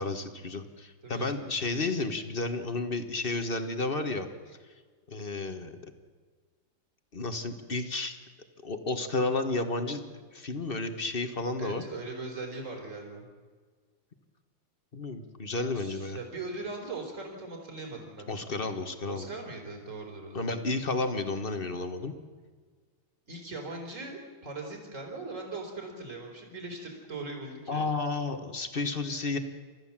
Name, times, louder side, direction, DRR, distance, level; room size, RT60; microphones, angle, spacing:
voice 1, 0.0-4.3 5.1-5.8 7.1-8.2 8.6-10.0 10.3-11.8 14.9-16.2 18.3-19.3 20.3-22.1 27.7-29.4, left 3 dB, 30° left, 8 dB, 1.4 m, -32 dB
voice 2, 11.6-13.3 15.7-18.4 19.1-20.6 23.3-27.9, right 3 dB, 35° right, 2 dB, 4.5 m, -40 dB
29.5 x 14.5 x 7.4 m, 1.5 s
omnidirectional pair, 2.4 m